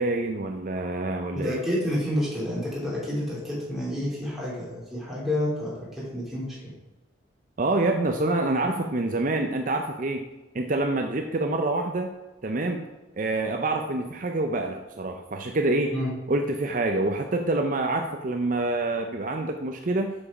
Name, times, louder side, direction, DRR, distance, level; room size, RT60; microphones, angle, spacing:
voice 1, 0.0-1.6 7.6-10.3 10.5-12.1 12.4-12.9 13.1-15.9 16.3-20.1, right 2 dB, 45° right, 5 dB, 0.5 m, -26 dB
voice 2, 1.3-6.6 15.9-16.1, left 1 dB, ahead, -7 dB, 3.0 m, -29 dB
7.2 x 6.9 x 4.9 m, 1.1 s
head